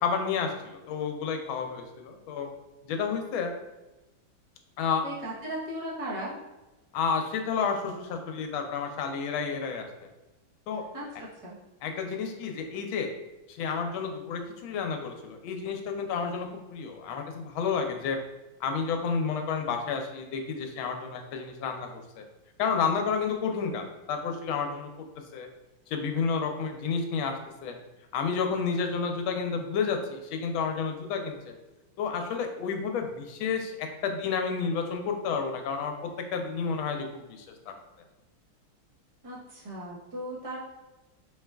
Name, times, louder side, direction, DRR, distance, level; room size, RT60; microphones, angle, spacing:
voice 1, 0.0-2.5 2.8-3.5 4.8-5.0 6.9-9.9 10.7-10.8 11.8-13.1 13.5-18.2 18.6-22.2 22.6-24.9 25.3-25.5 25.9-27.8 28.1-31.5 32.0-37.7, left 5 dB, 85° left, 4 dB, 1.4 m, -30 dB
voice 2, 5.0-6.4 10.9-11.6 39.2-40.6, right 1 dB, 45° right, -5 dB, 0.4 m, -37 dB
4.9 x 3.1 x 2.3 m, 1.1 s
omnidirectional pair, 2.2 m